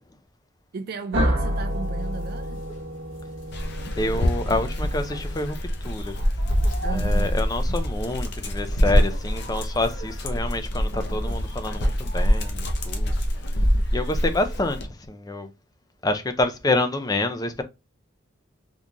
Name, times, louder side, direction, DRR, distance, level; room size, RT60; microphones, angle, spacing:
voice 1, 0.7-2.6 6.8-7.5, right 5 dB, 50° right, 0.3 m, -35 dB
sound 1, 1.1-5.8, equal, 70° right, 1.1 m, -29 dB
sound 2, 1.5-14.8, equal, 75° left, 1.3 m, -45 dB
Dog, 3.5-14.9, equal, 60° left, 0.7 m, -25 dB
voice 2, 4.0-6.2 6.9-13.1 13.9-15.5 16.0-17.6, left 2 dB, 20° left, 0.5 m, -27 dB
3.6 x 2.8 x 2.5 m
head